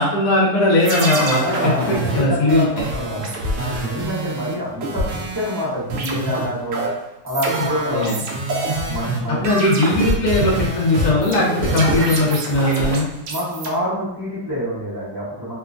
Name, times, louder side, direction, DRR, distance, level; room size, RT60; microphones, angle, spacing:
voice 1, 0.0-2.8 7.6-8.2 9.4-13.1, left 1 dB, 65° left, -3 dB, 1.0 m, -19 dB
sound 1, 0.8-5.6 5.9-13.7, right 2 dB, 75° right, 0.7 m, -25 dB
voice 2, 1.4-3.3 3.5-6.9 7.2-8.1 8.9-9.7 13.3-15.5, equal, 25° right, -10 dB, 0.5 m, -26 dB
2.9 x 2.2 x 2.4 m, 0.84 s
omnidirectional pair, 1.8 m